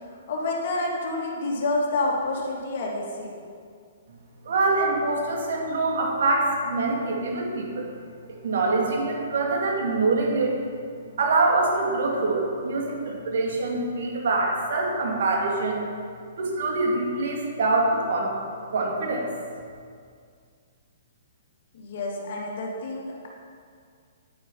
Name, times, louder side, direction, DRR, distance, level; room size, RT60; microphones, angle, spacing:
voice 1, 0.3-3.3 21.7-23.3, left 2 dB, 50° left, -2 dB, 2.5 m, -28 dB
voice 2, 4.4-7.9 8.4-10.6 11.2-15.8 16.4-18.3 18.7-19.3, right 3 dB, 60° right, -1 dB, 2.4 m, -24 dB
10.0 x 9.2 x 5.5 m, 2.2 s
figure-of-eight pair, 120°, 0 cm